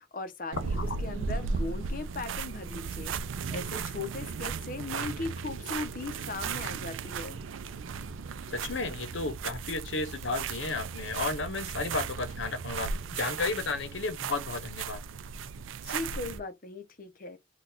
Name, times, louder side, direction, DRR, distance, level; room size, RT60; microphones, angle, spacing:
voice 1, 0.0-3.1 3.5-7.4 15.8-17.4, left 3 dB, 45° left, 0.7 m, -38 dB
sound 1, 0.5-16.4, right 5 dB, 90° right, 0.4 m, -36 dB
voice 2, 8.5-15.0, left 3 dB, 80° left, 0.9 m, -33 dB
3.9 x 2.3 x 2.7 m
head